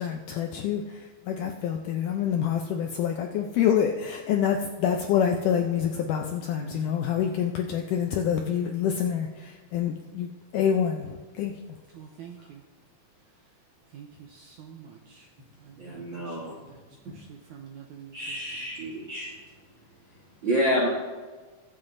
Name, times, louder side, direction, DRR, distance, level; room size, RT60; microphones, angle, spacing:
voice 1, 0.0-11.5, left 8 dB, 80° left, 1.9 m, -27 dB
voice 2, 6.6-7.3 11.9-12.6 13.2-13.5 13.8-18.7, right 8 dB, 80° right, 1.8 m, -48 dB
voice 3, 15.8-16.5 17.0-17.1 18.1-19.3 20.4-20.9, equal, 60° right, 1.2 m, -28 dB
22.5 x 7.5 x 2.6 m
omnidirectional pair, 4.3 m